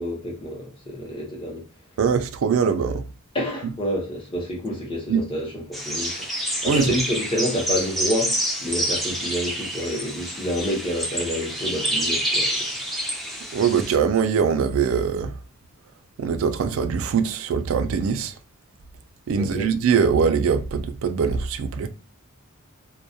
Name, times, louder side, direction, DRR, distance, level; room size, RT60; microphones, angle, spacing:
voice 1, 0.0-1.6 3.3-6.1 6.6-12.5 19.3-19.7, equal, 25° left, 0.8 m, -28 dB
voice 2, 2.0-3.0 5.1-5.2 6.7-6.9 13.5-15.3 16.2-18.3 19.3-21.9, right 6 dB, 70° right, 0.3 m, -22 dB
sound 1, 5.7-13.9, equal, ahead, 0.4 m, -27 dB
2.2 x 2.1 x 2.7 m
head